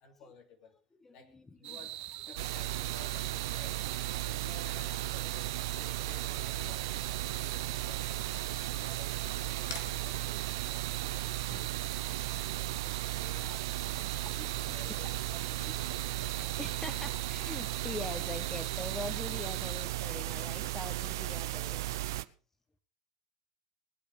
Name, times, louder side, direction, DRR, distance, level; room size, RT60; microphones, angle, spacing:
voice 1, 0.0-0.8 1.1-3.7 4.2-8.4 8.7-10.8 13.2-13.7 14.5-16.1, left 5 dB, 60° left, 5 dB, 3.1 m, -54 dB
voice 2, 0.9-1.8 2.3-2.4 3.6-3.7 4.1-4.2 8.6-9.1 10.3-10.4 11.3-12.3 12.6-13.0 14.1-14.9 16.6-22.2, left 2 dB, 15° left, 10 dB, 1.5 m, -44 dB
sound 1, 1.6-19.8, right 13 dB, 55° right, 1.1 m, -44 dB
sound 2, 2.4-22.2, right 15 dB, 80° right, 0.7 m, -35 dB
sound 3, 9.6-16.6, left 5 dB, 85° left, 2.1 m, -54 dB
18.5 x 8.6 x 5.2 m, 0.37 s
hypercardioid pair, 95°, 2 cm